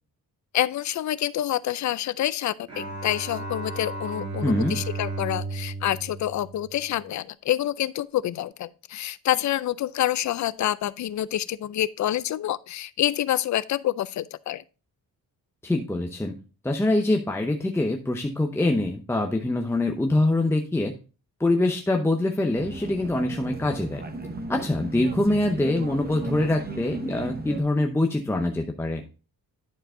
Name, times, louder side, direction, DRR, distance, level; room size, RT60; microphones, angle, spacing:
voice 1, 0.5-14.6, left 12 dB, 55° left, 0.5 m, -27 dB
Bowed string instrument, 2.7-7.1, right 3 dB, 50° right, 2.2 m, -34 dB
voice 2, 4.4-4.8 15.6-16.3 16.6-20.9 21.4-24.0 24.5-29.0, left 2 dB, 5° left, 0.7 m, -24 dB
sound 1, 22.5-27.6, right 2 dB, 25° right, 0.9 m, -35 dB
10.5 x 4.6 x 3.7 m
cardioid pair, 130°, 36 cm